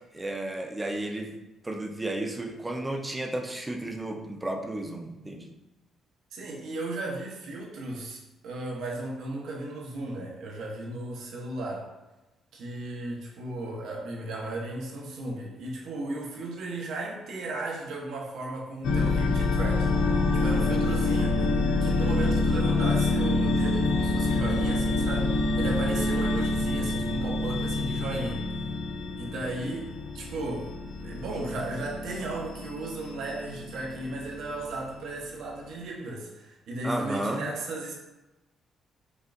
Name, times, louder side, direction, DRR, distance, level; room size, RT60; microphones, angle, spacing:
voice 1, 0.1-1.3 1.6-5.5 36.8-37.4, right 1 dB, 15° right, 2 dB, 0.6 m, -33 dB
voice 2, 6.3-11.9 12.5-21.5 21.8-28.4 29.2-30.7 31.0-37.9, right 2 dB, 80° right, -1 dB, 0.9 m, -35 dB
sound 1, 18.8-34.9, left 2 dB, 80° left, 0.3 m, -27 dB
5.0 x 2.4 x 2.5 m, 1.0 s
cardioid pair, 90°, 0 cm